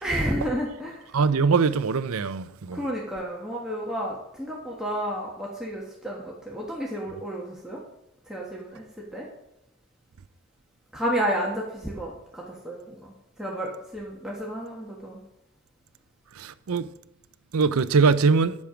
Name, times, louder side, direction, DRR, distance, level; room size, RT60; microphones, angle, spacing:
voice 1, 0.0-1.0 2.7-7.8 8.3-8.9 9.1-9.3 10.9-13.1 13.4-15.2, equal, 5° right, 1.3 m, -31 dB
voice 2, 1.1-2.8 16.4-16.9 17.5-18.6, right 5 dB, 80° right, 0.5 m, -22 dB
10.5 x 7.3 x 5.0 m
head